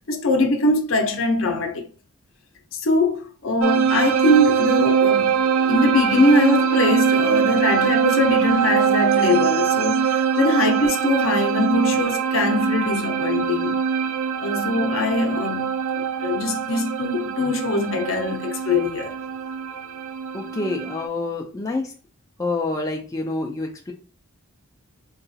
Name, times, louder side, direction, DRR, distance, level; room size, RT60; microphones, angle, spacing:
voice 1, 0.1-1.9 2.7-5.4 5.7-13.8 14.4-19.2, left 2 dB, 60° left, 0.6 m, -22 dB
sound 1, 3.6-21.1, right 7 dB, 65° right, 0.3 m, -22 dB
voice 2, 20.3-21.9 22.4-23.9, left 3 dB, 15° left, 0.3 m, -27 dB
3.8 x 2.3 x 2.6 m
head